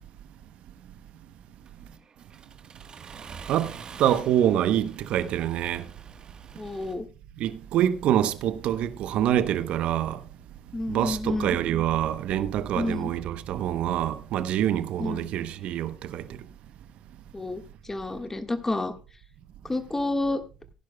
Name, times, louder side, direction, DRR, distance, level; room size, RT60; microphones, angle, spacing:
Accelerating revving vroom, 1.7-6.9, right 6 dB, 45° right, 1.3 m, -46 dB
voice 1, 4.0-5.9 7.4-10.2 10.9-16.2, right 11 dB, 65° right, 0.8 m, -25 dB
voice 2, 6.5-7.1 10.7-11.6 12.7-13.1 15.0-15.3 17.3-18.9 19.6-20.4, left 2 dB, 20° left, 1.6 m, -30 dB
17.0 x 10.5 x 2.3 m
hypercardioid pair, 55°, 2 cm